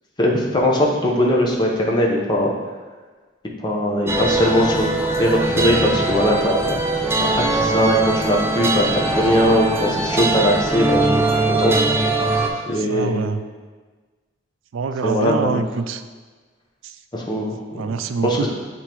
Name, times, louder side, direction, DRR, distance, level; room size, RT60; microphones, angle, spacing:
voice 1, 0.2-2.5 3.6-6.8 7.3-11.2 11.5-11.7 12.7-13.2 15.0-15.6 17.1-17.6 18.2-18.5, equal, 20° left, -2 dB, 0.8 m, -20 dB
sound 1, 4.1-12.5, right 2 dB, 15° right, 0.5 m, -21 dB
voice 2, 12.7-13.4 14.7-16.0 16.8-17.0 17.8-18.5, right 5 dB, 80° right, 10 dB, 0.4 m, -25 dB
8.5 x 3.7 x 3.0 m, 1.4 s
head